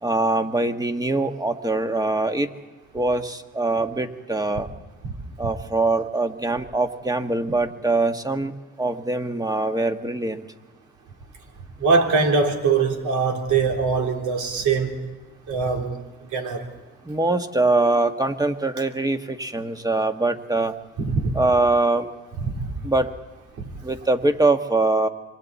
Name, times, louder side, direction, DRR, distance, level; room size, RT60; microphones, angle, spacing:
voice 1, 0.0-2.5 2.9-4.7 5.4-10.4 17.0-20.7 21.3-22.1 22.8-23.1 23.8-25.1, right 2 dB, 10° right, 7 dB, 1.4 m, -23 dB
voice 2, 11.8-15.0 15.5-16.0 16.3-16.7 21.0-21.3 22.4-22.7, right 4 dB, 75° right, 1 dB, 3.6 m, -22 dB
26.5 x 23.5 x 4.2 m, 1.2 s
cardioid pair, 90°, 30 cm